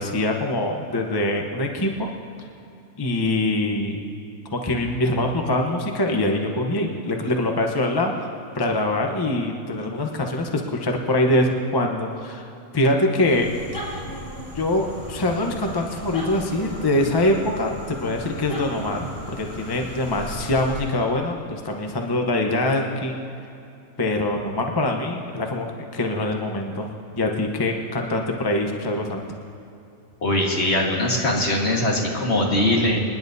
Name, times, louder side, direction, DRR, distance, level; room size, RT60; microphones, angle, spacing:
voice 1, 0.0-2.1 3.0-4.0 4.5-8.3 8.5-12.5 12.7-14.0 14.5-23.2 24.0-25.7 25.9-29.2, left 1 dB, 20° left, 2 dB, 0.8 m, -24 dB
sound 1, 13.1-21.0, equal, 70° left, 3.3 m, -36 dB
voice 2, 30.2-33.0, left 1 dB, 55° left, -1 dB, 1.9 m, -21 dB
27.0 x 10.5 x 2.7 m, 2.7 s
omnidirectional pair, 1.4 m